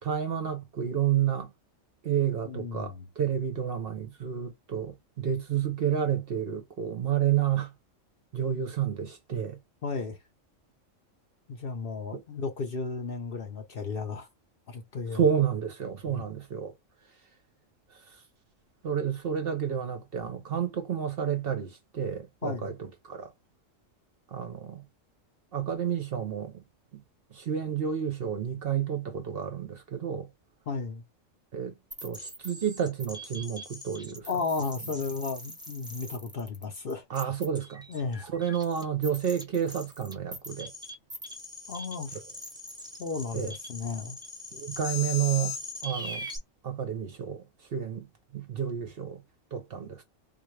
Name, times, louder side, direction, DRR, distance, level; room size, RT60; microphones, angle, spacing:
voice 1, 0.0-1.5 2.0-7.7 8.3-9.6 12.1-12.2 15.1-16.7 17.9-18.2 18.8-23.3 24.3-24.8 25.5-26.6 26.9-27.0 27.3-30.3 31.5-31.7 32.0-34.3 37.1-37.8 38.3-40.7 43.3-43.5 44.5-45.6 45.8-46.3 46.6-47.4 47.7-48.1 48.3-49.2 49.5-50.0, right 8 dB, 55° right, 0.8 m, -30 dB
voice 2, 2.4-3.1 9.8-10.2 11.5-14.3 14.7-15.2 16.0-16.2 22.4-22.7 30.7-31.0 34.3-37.0 37.9-38.2 41.7-42.2 43.0-44.2, left 4 dB, 50° left, 0.8 m, -34 dB
sound 1, 31.9-46.4, left 2 dB, 5° right, 0.5 m, -41 dB
3.7 x 2.4 x 3.1 m
omnidirectional pair, 1.3 m